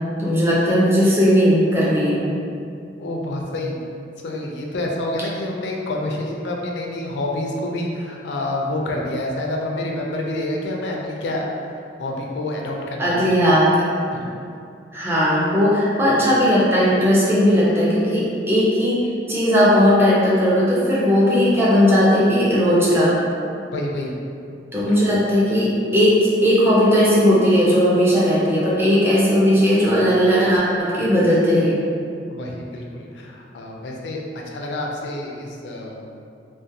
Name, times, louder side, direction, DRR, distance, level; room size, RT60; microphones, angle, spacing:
voice 1, 0.2-2.2 13.0-13.7 14.9-19.0 19.3-23.2 24.7-31.8, equal, 15° right, -8 dB, 0.5 m, -17 dB
voice 2, 3.0-3.8 4.2-11.5 12.0-13.4 14.1-14.3 23.7-24.1 24.9-25.1 32.3-34.2 34.5-36.1, left 1 dB, 80° left, -1 dB, 0.4 m, -28 dB
2.4 x 2.1 x 2.7 m, 2.4 s
head